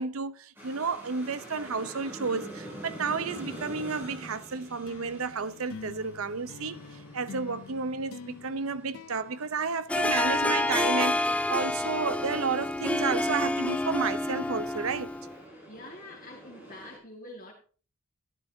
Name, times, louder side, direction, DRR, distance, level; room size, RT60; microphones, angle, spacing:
voice 1, 0.0-6.8 7.1-15.1, right 5 dB, 90° right, 0.7 m, -31 dB
sound 1, 0.5-17.0, right 1 dB, 10° right, 6.3 m, -47 dB
sound 2, 4.9-10.5, left 5 dB, 75° left, 0.5 m, -47 dB
Harp, 9.9-15.4, left 2 dB, 5° left, 0.4 m, -28 dB
voice 2, 15.7-17.5, left 2 dB, 40° left, 1.9 m, -46 dB
13.0 x 11.5 x 2.7 m
head